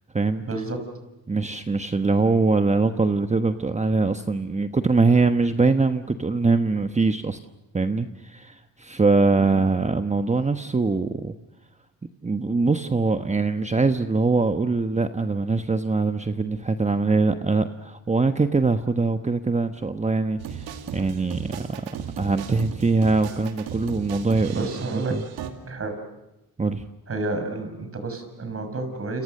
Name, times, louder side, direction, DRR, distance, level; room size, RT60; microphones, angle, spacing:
voice 1, 0.4-0.9 9.4-9.6 24.5-25.1 25.7-25.9 27.1-29.2, right 3 dB, 40° right, 7 dB, 6.1 m, -30 dB
voice 2, 1.3-7.4 7.7-11.3 12.2-21.9 22.2-25.2 26.6-26.8, right 3 dB, 20° right, 8 dB, 1.2 m, -23 dB
sound 1, 20.4-25.5, right 8 dB, 80° right, 2.6 m, -36 dB
29.0 x 27.5 x 6.7 m, 0.97 s
cardioid pair, 80°, 37 cm